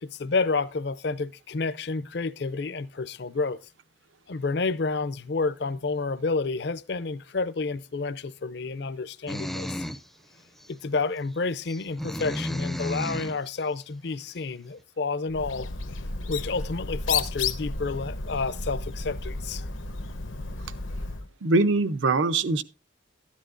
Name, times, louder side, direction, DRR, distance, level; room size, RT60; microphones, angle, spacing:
voice 1, 0.0-3.6 4.3-9.9 10.7-15.7 16.3-19.7 20.4-20.5, left 4 dB, 55° left, 0.5 m, -30 dB
sound 1, 9.3-10.1 10.6-10.7 11.6-13.4, equal, ahead, 0.4 m, -32 dB
Bird, 15.3-21.3, left 4 dB, 85° left, 1.0 m, -33 dB
voice 2, 21.4-22.6, right 3 dB, 75° right, 0.7 m, -22 dB
13.0 x 10.5 x 2.5 m
head